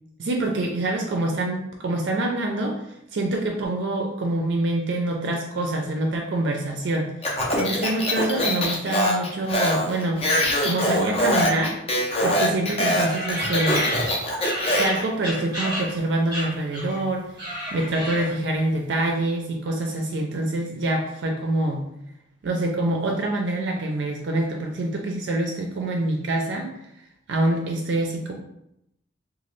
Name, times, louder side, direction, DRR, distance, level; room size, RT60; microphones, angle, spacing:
voice 1, 0.2-7.3 7.6-10.2 10.6-11.8 12.2-13.9 14.7-17.3 17.7-21.9 22.4-26.7 27.3-28.3, right 2 dB, 60° right, 1 dB, 0.4 m, -25 dB
Speech, 7.2-15.0, left 1 dB, 30° left, 0.5 m, -23 dB
sound 1, 13.1-16.0 16.3-17.0 17.3-18.5, equal, 20° right, 0.8 m, -30 dB
2.9 x 2.3 x 3.1 m, 0.81 s
head